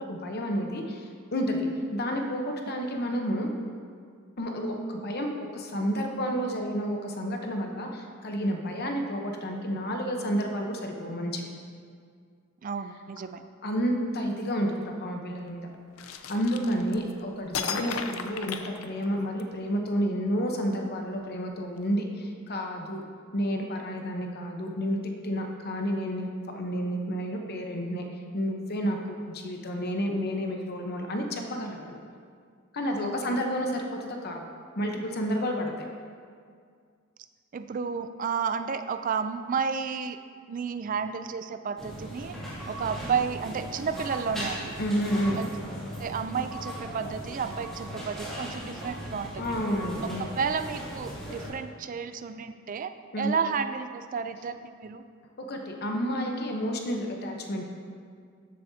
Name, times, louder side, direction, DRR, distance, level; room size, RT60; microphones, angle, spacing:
voice 1, 0.0-3.5 4.4-11.5 13.6-15.7 16.1-23.0 23.3-26.3 26.5-28.1 28.3-32.0 32.7-34.5 34.8-35.9 44.8-45.4 49.3-50.3 53.1-53.3 55.4-57.6, equal, 50° left, 2 dB, 0.9 m, -30 dB
voice 2, 12.6-13.4 32.9-33.4 37.5-40.2 40.5-42.4 42.7-44.7 45.4-45.5 46.0-49.6 50.4-55.0, right 6 dB, 40° right, 9 dB, 0.4 m, -32 dB
sound 1, 16.0-17.1 17.5-19.4, left 6 dB, 75° left, 0.6 m, -34 dB
sound 2, 41.8-51.5, right 1 dB, ahead, 2.5 m, -38 dB
13.0 x 7.5 x 2.8 m, 2.1 s
head